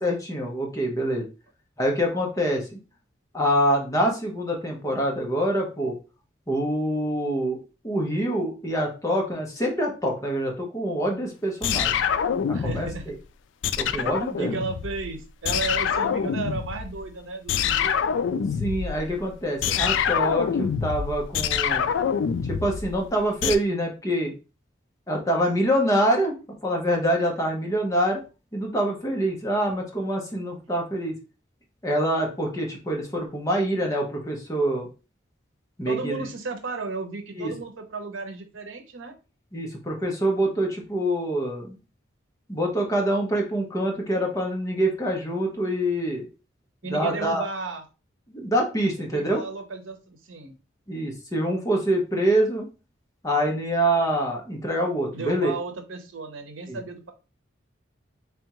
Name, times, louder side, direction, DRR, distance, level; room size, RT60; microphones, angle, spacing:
voice 1, 0.0-1.3 1.8-2.8 3.3-6.0 6.5-7.6 7.8-12.0 12.6-13.1 13.8-14.6 18.6-21.9 22.5-24.3 25.1-26.4 26.6-28.2 28.5-31.1 31.8-34.9 35.8-36.3 37.4-37.5 39.5-41.8 42.5-46.3 46.8-47.5 48.3-49.4 50.9-52.7 53.2-55.5 56.7-56.8, right 1 dB, 15° left, 0 dB, 0.9 m, -25 dB
sound 1, 11.6-13.1 13.6-15.2 15.4-17.0 17.5-23.6, left 7 dB, 70° left, 0.3 m, -26 dB
voice 2, 12.5-13.1 14.0-18.2 35.9-39.1 46.8-47.8 49.1-50.5 55.1-57.1, right 3 dB, 85° right, 7 dB, 0.7 m, -34 dB
3.5 x 3.4 x 2.9 m, 0.32 s
head